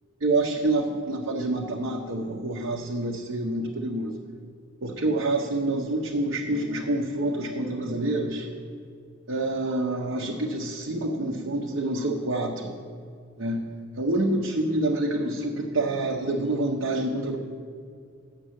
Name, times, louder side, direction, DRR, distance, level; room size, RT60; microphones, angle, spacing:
voice 1, 0.2-4.1 4.8-8.5 9.3-12.7 13.4-13.6 14.0-17.4, right 2 dB, 75° right, -1 dB, 0.8 m, -27 dB
7.6 x 6.7 x 8.1 m, 2.2 s
head